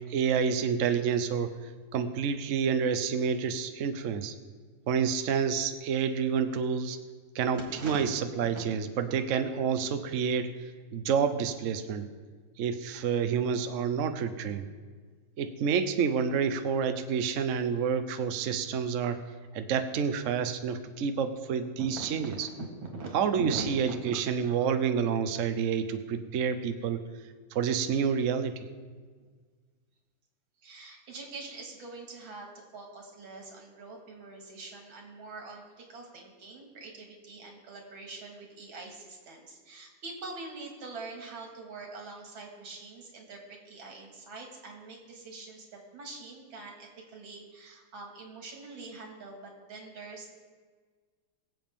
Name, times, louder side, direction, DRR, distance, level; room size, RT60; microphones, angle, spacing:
voice 1, 0.1-4.3 4.9-7.0 7.3-12.1 12.6-14.7 15.4-19.2 19.5-22.5 23.1-27.0 27.5-28.7, right 6 dB, 60° right, 9 dB, 0.8 m, -29 dB
voice 2, 7.5-8.0 8.5-8.6 21.8-21.9 22.9-24.0 30.6-50.4, right 3 dB, 90° right, 1 dB, 2.8 m, -44 dB
22.0 x 7.7 x 3.6 m, 1.5 s
omnidirectional pair, 2.1 m